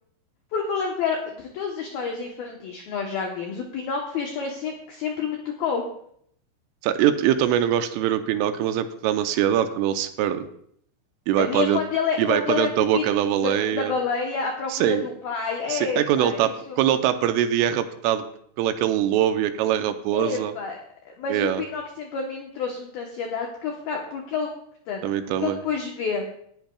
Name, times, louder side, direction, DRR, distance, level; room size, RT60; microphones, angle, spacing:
voice 1, 0.5-5.8 11.4-13.0 13.4-16.8 20.1-20.8 21.1-24.5 24.9-25.1 25.4-26.2, left 5 dB, 85° left, 1 dB, 2.1 m, -29 dB
voice 2, 6.8-10.5 11.3-11.8 12.2-13.9 14.7-15.1 15.7-16.5 16.8-18.2 18.6-20.5 21.3-21.6 25.0-25.6, right 10 dB, 85° right, 8 dB, 3.1 m, -23 dB
19.0 x 10.5 x 2.3 m, 0.67 s
omnidirectional pair, 5.9 m